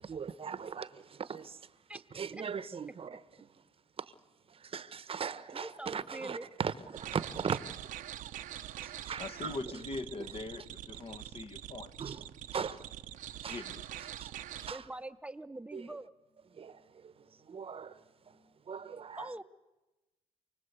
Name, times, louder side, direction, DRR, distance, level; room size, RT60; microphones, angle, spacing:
voice 1, 0.0-3.6 4.0-4.1 4.5-9.6 10.2-10.3 10.9-11.0 12.0-12.9 13.4-14.9 15.7-15.9 16.5-18.4 18.7-19.3, right 6 dB, 45° right, 1.0 m, -40 dB
voice 2, 5.5-6.5 14.7-16.1 19.2-19.4, right 1 dB, 10° right, 0.8 m, -43 dB
sound 1, 6.9-14.7, right 12 dB, 85° right, 1.0 m, -44 dB
voice 3, 9.2-11.9 13.5-13.8, left 3 dB, 45° left, 1.4 m, -42 dB
28.5 x 19.5 x 8.2 m
cardioid pair, 85°, 13 cm